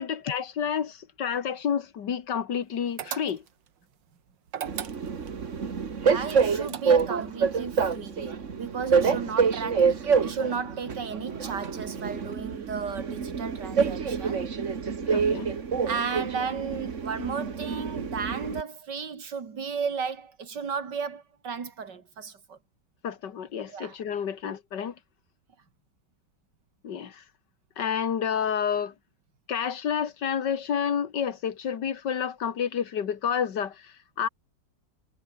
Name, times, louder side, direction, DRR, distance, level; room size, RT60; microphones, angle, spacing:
voice 1, 0.0-3.4 15.1-15.5 23.0-25.0 26.8-27.2 27.8-28.9 29.5-34.3, left 8 dB, 70° left, 2.1 m, -29 dB
sound 1, 3.0-3.7 4.5-5.4 6.3-7.2, right 9 dB, 90° right, 2.0 m, -37 dB
Train, 4.7-18.6, right 6 dB, 45° right, 1.8 m, -27 dB
voice 2, 6.0-14.5 15.8-22.6 23.7-24.0, right 6 dB, 75° right, 2.8 m, -34 dB
omnidirectional pair, 1.9 m